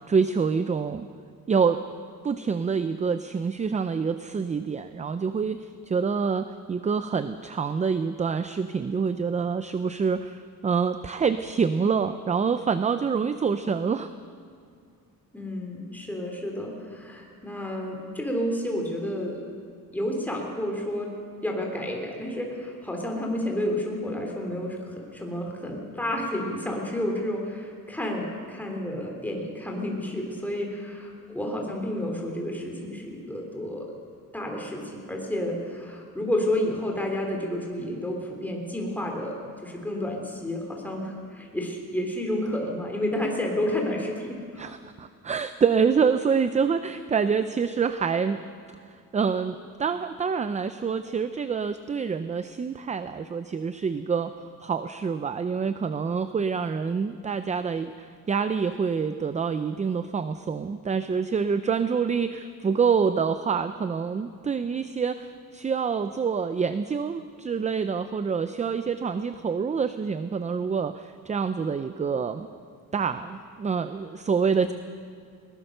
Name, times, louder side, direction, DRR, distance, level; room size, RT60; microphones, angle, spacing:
voice 1, 0.1-1.1 1.5-1.8 2.2-14.1 44.6-48.4 49.1-54.3 54.6-72.5 72.9-74.7, right 6 dB, 20° right, 11 dB, 0.5 m, -26 dB
voice 2, 15.3-19.4 19.9-21.1 21.4-33.9 34.3-44.7 74.6-74.7, left 1 dB, 5° left, 0 dB, 3.4 m, -30 dB
21.5 x 19.5 x 6.7 m, 2.2 s
cardioid pair, 160°, 35 cm